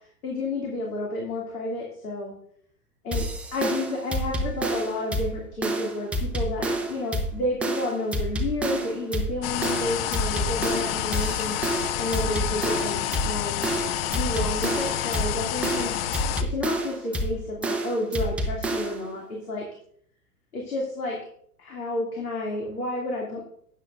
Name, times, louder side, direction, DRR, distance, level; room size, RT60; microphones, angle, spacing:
voice 1, 0.2-2.3 3.0-3.3 3.5-11.5 12.0-13.7 14.1-15.9 16.4-19.6 20.5-21.2 21.6-23.4, left 2 dB, 70° left, -2 dB, 2.7 m, -30 dB
sound 1, 3.1-19.1, right 1 dB, 5° right, 0.3 m, -29 dB
sound 2, 9.4-16.4, left 12 dB, 40° left, 0.6 m, -29 dB
12.5 x 9.2 x 2.5 m, 0.64 s
figure-of-eight pair, 100°, 45 cm